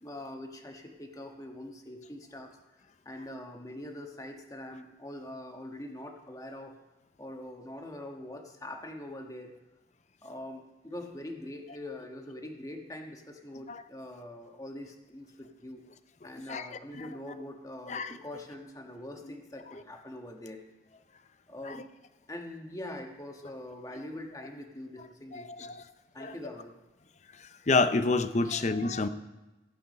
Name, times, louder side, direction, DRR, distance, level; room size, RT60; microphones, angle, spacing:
voice 1, 0.0-2.5 3.0-6.8 7.2-9.5 10.2-15.8 16.2-20.6 21.5-21.9 22.3-25.8 26.1-26.7 28.4-28.7, left 1 dB, 20° left, 3 dB, 1.3 m, -43 dB
voice 2, 25.3-25.8 26.2-26.3 27.4-29.1, left 3 dB, 40° left, 11 dB, 0.6 m, -29 dB
15.0 x 8.5 x 5.3 m, 1.1 s
head